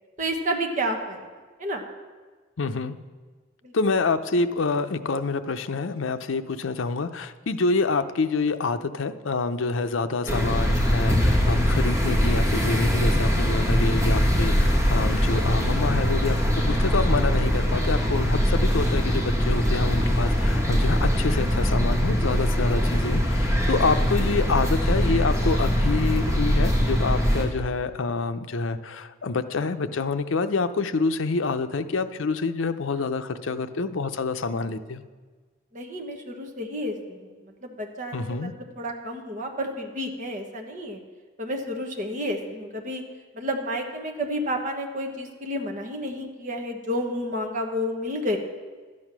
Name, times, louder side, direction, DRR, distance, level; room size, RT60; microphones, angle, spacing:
voice 1, 0.2-1.3 1.6-1.8 3.6-3.7 35.7-37.3 37.6-38.5 38.8-41.0 41.4-43.0 43.3-48.4, equal, 40° right, 3 dB, 1.3 m, -30 dB
voice 2, 2.6-3.0 3.7-35.0 38.1-38.5, left 4 dB, 80° left, 10 dB, 0.6 m, -27 dB
sound 1, 10.3-27.4, equal, 15° right, 2.0 m, -22 dB
12.0 x 8.5 x 6.0 m, 1.4 s
head